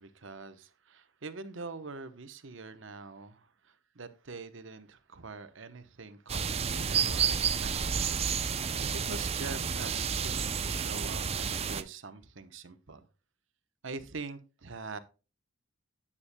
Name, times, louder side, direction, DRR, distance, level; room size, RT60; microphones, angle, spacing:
voice 1, 0.0-8.2 9.0-13.0 13.8-15.0, right 4 dB, 65° right, 0.9 m, -44 dB
sound 1, 6.3-11.8, right 6 dB, 30° right, 0.5 m, -30 dB
9.8 x 8.3 x 2.2 m
head